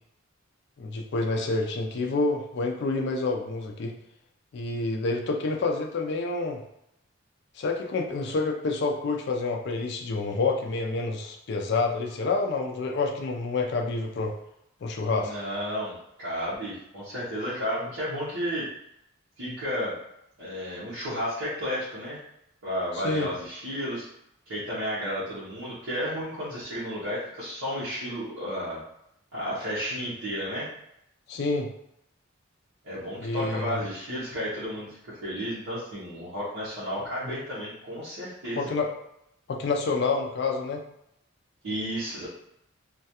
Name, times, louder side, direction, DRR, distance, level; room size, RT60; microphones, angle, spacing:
voice 1, 0.8-4.0 4.5-6.6 7.6-14.3 14.8-15.3 22.9-23.3 31.3-31.7 33.2-33.8 38.5-38.9 39.5-40.8, left 3 dB, 55° left, 2 dB, 0.3 m, -28 dB
voice 2, 15.2-18.7 19.4-19.9 20.4-22.2 22.6-24.1 24.5-28.8 29.3-30.7 32.8-38.7 41.6-42.3, equal, 75° right, -10 dB, 0.7 m, -32 dB
2.3 x 2.2 x 2.7 m, 0.78 s
head